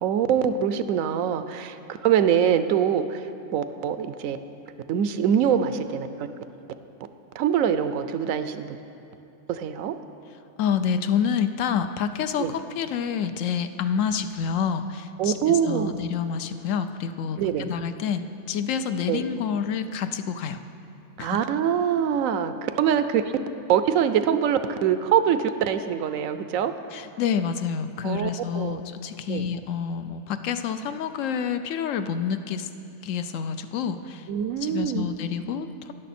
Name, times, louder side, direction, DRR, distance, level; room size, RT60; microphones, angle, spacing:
voice 1, 0.0-1.8 2.0-3.2 3.5-4.4 4.9-6.1 7.4-8.8 9.5-10.0 12.4-12.5 15.2-16.0 17.4-17.7 19.1-19.3 21.2-23.2 23.7-26.7 28.0-28.3 28.5-28.8 29.3-29.5 34.3-35.0, right 8 dB, 85° right, 11 dB, 1.0 m, -24 dB
voice 2, 10.6-20.6 21.2-21.5 26.9-32.7 33.0-34.3 34.6-35.9, left 7 dB, 75° left, 10 dB, 0.9 m, -28 dB
13.0 x 10.0 x 4.2 m, 2.8 s
omnidirectional pair, 1.4 m